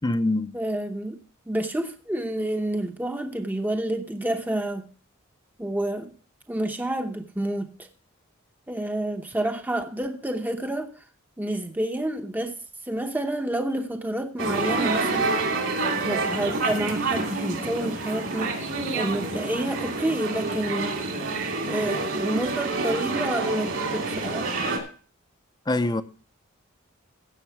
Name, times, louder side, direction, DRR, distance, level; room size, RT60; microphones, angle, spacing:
voice 1, 0.0-0.5 25.7-26.0, left 2 dB, 20° left, 0.6 m, -24 dB
voice 2, 0.5-1.2 1.5-4.9 5.6-6.1 6.5-7.7 8.7-10.9 11.4-12.5 12.8-15.4 16.0-21.0 21.6-24.6, right 1 dB, 10° right, 0.8 m, -29 dB
sound 1, 14.4-24.8, right 3 dB, 65° right, 2.9 m, -28 dB
16.0 x 6.8 x 4.6 m
head